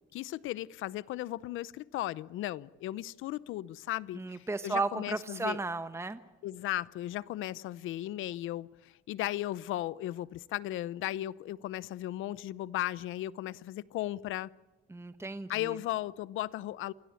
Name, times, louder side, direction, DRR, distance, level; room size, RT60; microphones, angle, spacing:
voice 1, 0.1-5.6 6.4-14.5 15.5-16.9, left 14 dB, 90° left, 19 dB, 0.7 m, -36 dB
voice 2, 4.1-6.2 14.9-15.8, right 3 dB, 15° right, 10 dB, 1.2 m, -34 dB
28.0 x 17.5 x 8.6 m, 1.1 s
cardioid pair, 90°, 20 cm